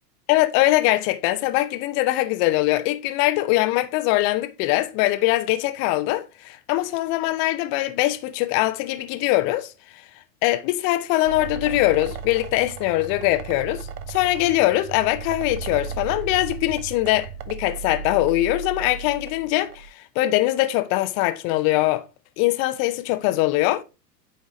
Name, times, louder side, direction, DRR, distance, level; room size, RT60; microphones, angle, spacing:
voice 1, 0.3-10.0 10.4-22.0 22.4-23.8, left 17 dB, 25° left, 0.5 m, -22 dB
sound 1, 11.2-19.9, right 6 dB, 65° right, 0.8 m, -35 dB
8.6 x 4.7 x 3.1 m
figure-of-eight pair, 95°, 50 cm